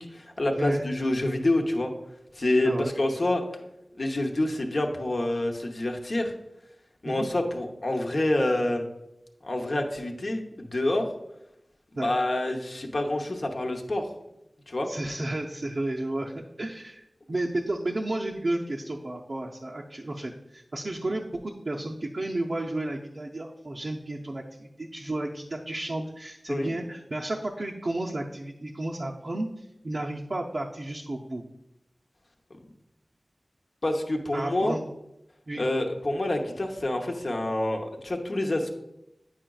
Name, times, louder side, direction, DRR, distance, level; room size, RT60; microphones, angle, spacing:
voice 1, 0.0-1.9 2.4-3.4 4.0-6.3 7.0-8.8 9.4-11.1 12.0-14.1 14.7-14.9 26.5-26.7 33.8-34.8 35.6-38.7, left 1 dB, 60° left, 2 dB, 0.8 m, -27 dB
voice 2, 14.9-17.0 17.3-31.4 34.3-34.9 35.5-35.6, right 1 dB, 60° right, -2 dB, 0.5 m, -32 dB
8.9 x 4.9 x 2.3 m, 0.87 s
cardioid pair, 45°, 0 cm